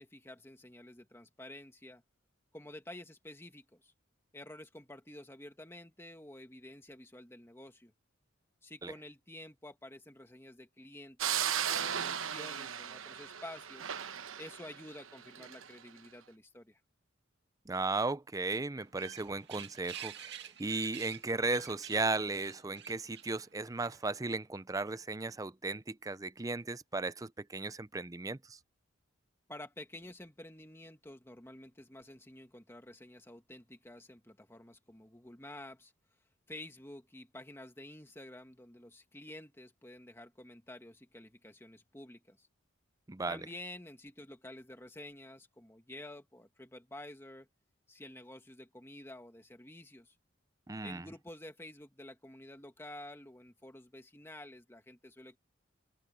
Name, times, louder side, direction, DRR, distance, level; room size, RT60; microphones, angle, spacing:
voice 1, 0.0-2.0 2.5-3.9 4.3-7.9 8.6-13.9 14.4-16.8 29.5-35.9 36.5-42.5 43.3-47.5 47.9-50.1 50.8-55.4, left 1 dB, 10° left, 1.8 m, -50 dB
sound 1, 11.2-15.7, right 9 dB, 80° right, 1.0 m, -36 dB
voice 2, 17.7-28.6 43.1-43.4 50.7-51.1, right 3 dB, 15° right, 0.5 m, -36 dB
sound 2, 18.8-24.2, right 10 dB, 55° right, 2.3 m, -49 dB
head